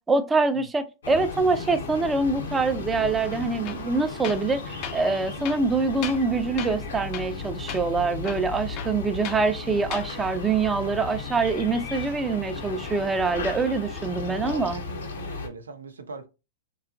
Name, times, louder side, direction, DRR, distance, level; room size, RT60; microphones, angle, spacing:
voice 1, 0.1-14.8, right 3 dB, 15° right, 0.4 m, -25 dB
sound 1, 1.0-15.5, left 4 dB, 80° left, 0.7 m, -35 dB
Tools, 3.6-3.9 4.2-4.5 4.8-5.0 5.4-6.3 6.6-6.8 7.1-7.4 7.7-7.8 8.2-9.4 9.8-10.1, left 9 dB, 45° left, 0.4 m, -37 dB
voice 2, 14.3-16.3, right 4 dB, 90° right, 0.4 m, -40 dB
2.7 x 2.3 x 2.4 m
hypercardioid pair, 110°, 0 cm